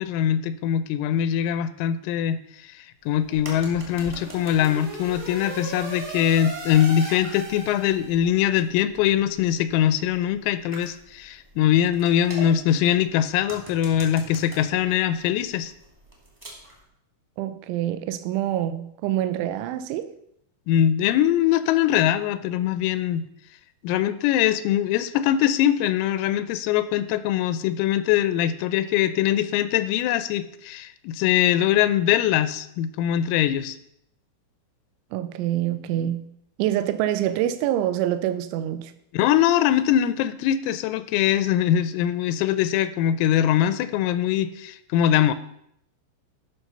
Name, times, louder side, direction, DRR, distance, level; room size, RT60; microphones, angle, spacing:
voice 1, 0.0-15.7 20.7-23.3 23.8-33.8 39.1-45.3, left 11 dB, 85° left, 3.3 m, -22 dB
sound 1, 3.0-16.8, right 1 dB, 20° right, 0.7 m, -45 dB
sound 2, 3.3-8.3, right 2 dB, 60° right, 1.0 m, -37 dB
voice 2, 17.4-20.1 35.1-36.2 36.6-38.9, right 12 dB, 85° right, 2.7 m, -26 dB
12.5 x 6.0 x 5.5 m
omnidirectional pair, 6.0 m